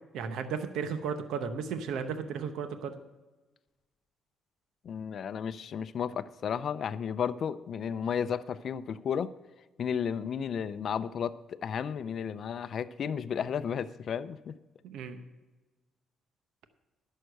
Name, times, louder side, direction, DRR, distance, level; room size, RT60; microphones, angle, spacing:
voice 1, 0.1-3.0 14.8-15.2, right 6 dB, 85° right, 9 dB, 0.8 m, -34 dB
voice 2, 4.8-9.3 9.8-14.5, left 7 dB, 60° left, 13 dB, 0.5 m, -33 dB
11.0 x 6.6 x 6.5 m, 1.2 s
cardioid pair, 90°, 0 cm